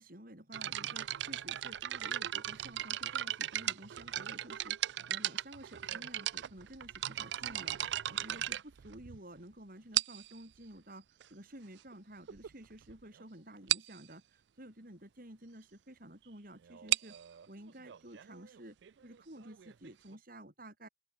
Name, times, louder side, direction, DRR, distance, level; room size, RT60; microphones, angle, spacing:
voice 1, 0.0-11.0 11.3-18.8 19.0-20.9, right 1 dB, 50° right, 6.4 m, -52 dB
sound 1, 0.5-9.4 9.9-10.4 11.2-11.3 11.9-12.0 12.3-12.5 12.8-12.9 13.2-13.3 13.7-14.0 16.7-20.2, right 13 dB, 75° right, 0.4 m, -37 dB
open air
head